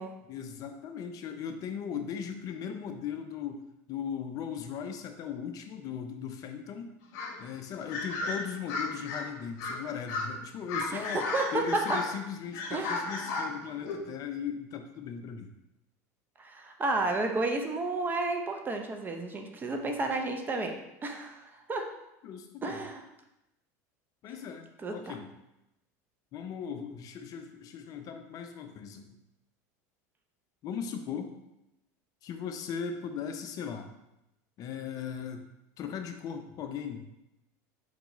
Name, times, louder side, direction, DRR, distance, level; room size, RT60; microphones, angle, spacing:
voice 1, 0.3-7.0 7.4-11.3 11.5-15.5 22.2-22.8 24.2-25.3 26.3-29.1 30.6-31.3 32.2-33.9 34.6-35.5 35.8-37.1, left 7 dB, 45° left, 7 dB, 0.5 m, -38 dB
sound 1, 7.1-7.4 7.9-9.2 9.6-9.8 10.1-10.3 10.7-12.1 12.5-14.1, left 3 dB, 65° left, 1.1 m, -34 dB
voice 2, 10.9-12.0 12.7-13.1 16.4-20.8 21.0-21.9 22.6-23.0 24.8-25.1, right 2 dB, 20° right, 4 dB, 0.6 m, -32 dB
4.6 x 3.8 x 3.0 m, 0.90 s
supercardioid pair, 120°, 9 cm